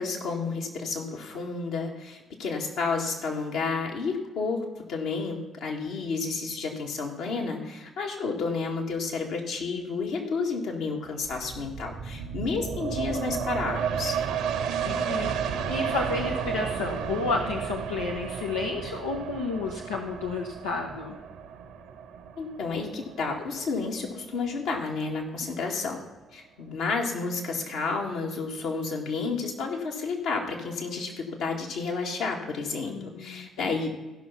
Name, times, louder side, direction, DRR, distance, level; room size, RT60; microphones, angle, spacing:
voice 1, 0.0-14.2 22.4-26.0 26.3-33.9, left 4 dB, 65° left, 0 dB, 1.9 m, -31 dB
sound 1, 11.2-24.5 25.0-25.1, right 7 dB, 70° right, 1.1 m, -33 dB
voice 2, 14.8-15.3 15.7-21.2 32.8-33.9, left 3 dB, 80° left, -1 dB, 0.9 m, -31 dB
15.0 x 6.0 x 5.6 m, 1.1 s
figure-of-eight pair, 45°, 0 cm